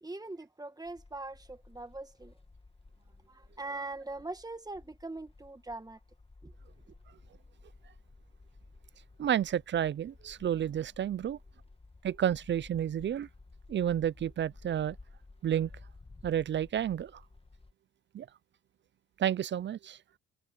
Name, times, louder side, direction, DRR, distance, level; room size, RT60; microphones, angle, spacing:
voice 1, 0.0-2.4 3.3-6.0 6.4-6.5, right 2 dB, 10° right, 1.7 m, -42 dB
sound 1, 0.8-17.7, left 3 dB, 20° left, 1.9 m, -56 dB
voice 2, 9.2-11.4 12.0-13.3 13.7-15.0 15.4-15.7 16.2-17.1 18.1-18.3 19.2-20.0, right 10 dB, 40° right, 0.4 m, -30 dB
cardioid pair, 90°, 30 cm